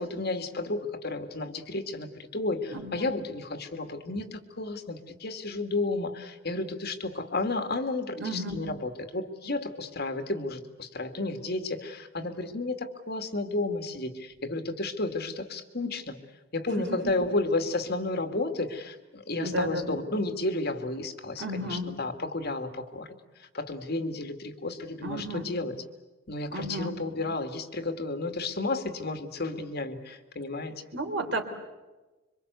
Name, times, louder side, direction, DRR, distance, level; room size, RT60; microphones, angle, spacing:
voice 1, 0.0-16.2 16.5-23.1 23.4-25.8 26.3-30.8, left 2 dB, 50° left, 7 dB, 2.3 m, -32 dB
voice 2, 2.7-3.1 8.2-8.7 16.8-17.0 19.4-20.0 21.4-21.9 25.0-25.5 26.5-27.0 30.9-31.4, right 1 dB, 60° right, 5 dB, 3.7 m, -33 dB
26.5 x 25.0 x 8.2 m, 1.2 s
head